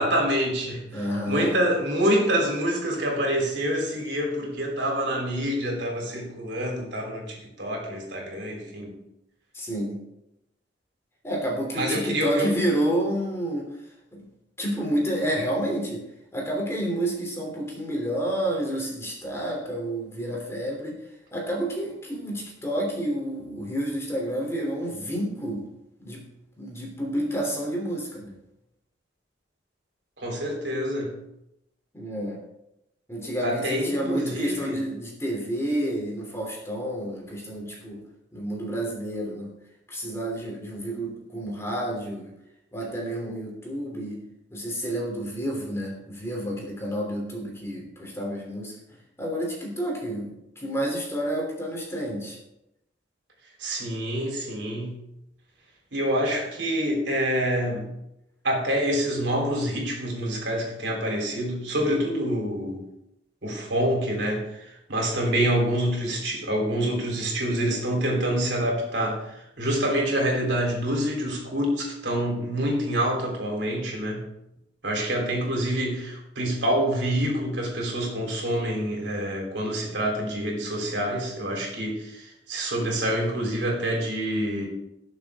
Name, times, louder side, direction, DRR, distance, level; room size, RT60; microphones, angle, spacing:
voice 1, 0.0-8.9 11.7-12.5 30.2-31.1 33.4-34.8 53.6-55.0 55.9-57.9 58.4-62.8 63.4-74.3 74.8-84.7, equal, 70° right, 0 dB, 3.8 m, -26 dB
voice 2, 0.9-1.6 9.5-10.0 11.2-13.7 14.1-14.3 14.6-16.0 16.3-21.0 21.3-25.7 26.0-26.2 26.6-28.3 31.9-32.4 33.1-38.0 38.3-39.5 39.9-42.3 42.7-44.2 44.5-52.4, right 1 dB, 15° left, -1 dB, 3.2 m, -29 dB
19.0 x 7.2 x 3.7 m, 0.85 s
head